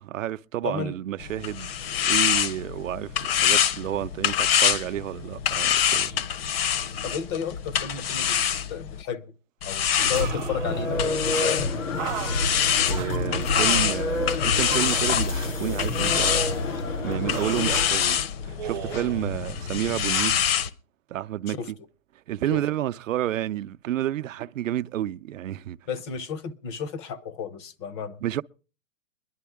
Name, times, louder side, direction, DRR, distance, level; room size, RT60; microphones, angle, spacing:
voice 1, 0.0-6.2 12.9-16.6 17.0-20.4 21.1-21.8 22.3-25.8 28.2-28.4, right 12 dB, 85° right, 0.6 m, -30 dB
voice 2, 0.6-0.9 7.0-8.4 8.7-9.2 9.6-11.7 21.5-21.7 22.5-22.6 25.9-28.2, left 7 dB, 20° left, 0.6 m, -33 dB
sound 1, 1.2-9.0 9.6-20.7, left 9 dB, 50° left, 0.9 m, -26 dB
sound 2, 9.9-11.0 11.3-11.5 12.0-12.4 12.9-13.1 13.5-13.9 14.6-15.2 16.1-16.4 17.3-17.9 18.6-19.3 20.1-20.4, right 13 dB, 35° right, 0.6 m, -36 dB
sound 3, 10.0-18.3, left 2 dB, 75° left, 3.1 m, -29 dB
21.0 x 11.0 x 3.5 m
hypercardioid pair, 155°, 38 cm